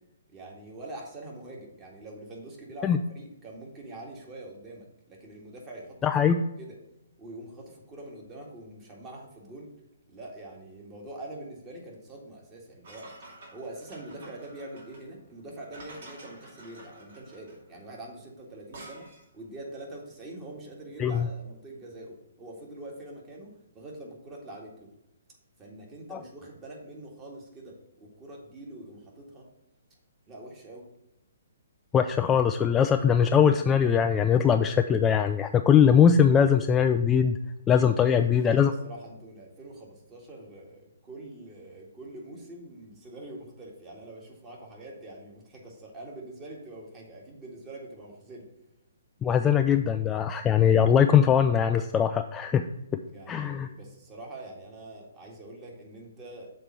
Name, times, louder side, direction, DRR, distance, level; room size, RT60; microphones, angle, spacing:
voice 1, 0.3-6.0 6.3-6.8 7.2-9.7 10.1-13.1 13.5-24.9 25.6-29.5 30.3-30.9 38.0-48.5 53.1-56.5, right 1 dB, 20° right, -1 dB, 2.0 m, -44 dB
voice 2, 6.0-6.4 21.0-21.3 26.1-26.2 31.9-37.4 37.7-38.7 49.2-52.7 52.9-53.0 53.3-53.7, left 8 dB, 15° left, 7 dB, 0.3 m, -21 dB
sound 1, 12.8-19.4, right 2 dB, 55° right, 2.4 m, -49 dB
6.8 x 4.2 x 6.0 m, 0.89 s
figure-of-eight pair, 135°, 0 cm